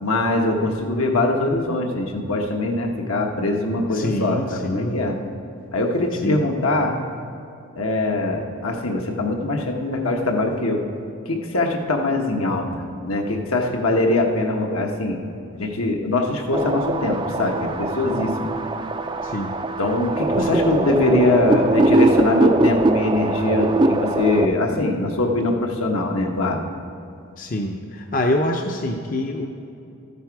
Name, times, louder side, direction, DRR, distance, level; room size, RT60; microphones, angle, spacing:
voice 1, 0.0-5.2 5.7-6.9 7.8-10.8 11.3-15.2 15.5-18.5 19.8-26.6, left 2 dB, 75° left, 2 dB, 1.2 m, -22 dB
voice 2, 3.7-5.0 6.2-6.4 19.2-19.5 20.3-20.9 27.4-29.5, left 1 dB, 40° left, 3 dB, 0.6 m, -25 dB
sound 1, 16.5-24.5, right 2 dB, 20° right, 0.4 m, -21 dB
13.5 x 9.1 x 4.7 m, 2.7 s
head